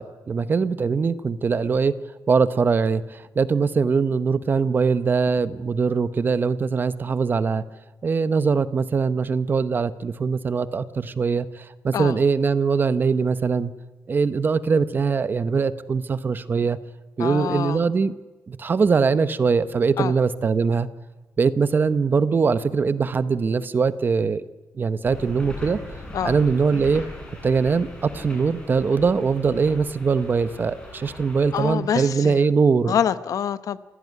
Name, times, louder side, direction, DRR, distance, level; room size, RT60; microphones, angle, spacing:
voice 1, 0.0-2.0 2.3-7.6 8.0-13.7 14.1-16.8 17.2-18.1 18.5-20.9 21.4-24.4 24.8-25.8 26.2-27.0 27.4-33.0, right 5 dB, 35° right, 14 dB, 0.8 m, -22 dB
voice 2, 17.2-17.8 20.0-20.1 26.1-26.3 31.5-32.4 32.9-33.8, left 9 dB, 70° left, 14 dB, 0.9 m, -25 dB
sound 1, 25.0-31.7, left 1 dB, 15° left, 6.6 m, -39 dB
28.0 x 16.5 x 9.4 m, 1.2 s
wide cardioid pair, 175°, 6 cm